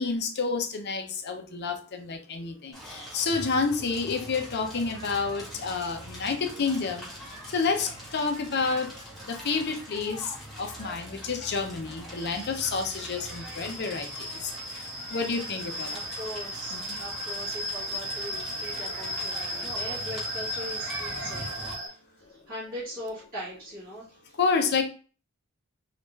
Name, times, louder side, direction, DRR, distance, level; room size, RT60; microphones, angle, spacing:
voice 1, 0.0-7.0 7.5-8.9 9.2-15.9 16.7-16.8 24.4-24.8, left 4 dB, 50° left, 5 dB, 0.6 m, -29 dB
Crackle, 2.7-21.7, equal, ahead, 1.2 m, -43 dB
sound 1, 12.2-21.9, equal, 65° right, 1.0 m, -36 dB
voice 2, 15.9-24.4, equal, 45° right, -10 dB, 1.5 m, -40 dB
3.3 x 2.4 x 3.1 m, 0.39 s
head